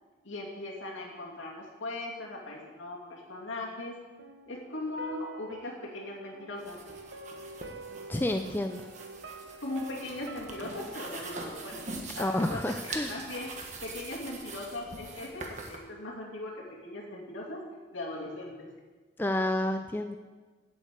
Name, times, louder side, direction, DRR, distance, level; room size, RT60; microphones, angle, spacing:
voice 1, 0.2-4.0 4.5-6.8 9.6-11.9 12.1-13.5 13.8-17.6 17.9-18.7, left 2 dB, 85° left, -3 dB, 2.7 m, -39 dB
sound 1, 4.2-13.2 13.5-13.6, right 2 dB, 65° right, 0.8 m, -48 dB
sound 2, 6.6-15.8, right 3 dB, 35° right, 1.3 m, -43 dB
voice 2, 8.1-8.9 12.2-13.2 19.2-20.2, left 1 dB, 10° left, 6 dB, 0.4 m, -30 dB
8.5 x 8.3 x 8.2 m, 1.3 s
head